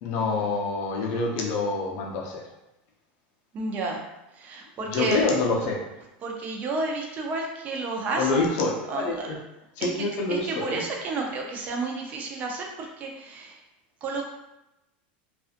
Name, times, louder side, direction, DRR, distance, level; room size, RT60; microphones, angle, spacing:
voice 1, 0.0-2.4 4.9-5.8 8.2-9.4 9.8-10.8, left 3 dB, 50° left, -1 dB, 0.6 m, -26 dB
voice 2, 3.5-4.0 4.4-5.2 6.2-8.5 8.9-9.4 9.8-13.6 14.0-14.2, right 3 dB, 30° right, 0 dB, 0.5 m, -31 dB
2.5 x 2.4 x 2.4 m, 0.92 s
supercardioid pair, 140°, 5 cm